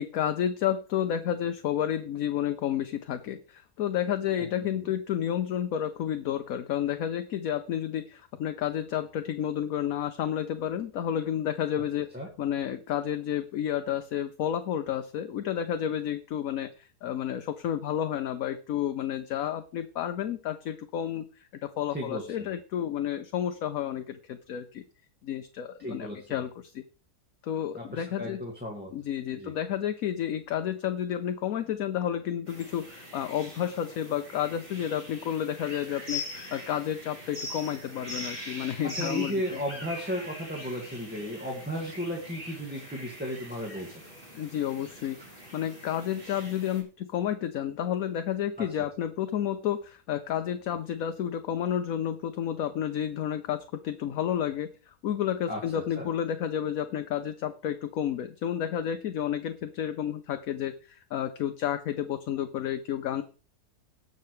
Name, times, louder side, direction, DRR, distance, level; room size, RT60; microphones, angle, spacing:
voice 1, 0.0-12.1 12.4-24.8 25.2-26.8 27.4-28.4 28.9-39.6 44.3-63.2, left 10 dB, 65° left, 8 dB, 1.1 m, -31 dB
voice 2, 21.9-22.5 25.8-26.3 27.7-28.9 29.3-29.5 38.9-44.0 48.6-48.7 55.5-56.1, equal, 5° right, -2 dB, 1.9 m, -35 dB
sound 1, 32.5-46.8, left 1 dB, 35° right, 3.9 m, -42 dB
18.5 x 6.6 x 3.2 m, 0.36 s
omnidirectional pair, 1.7 m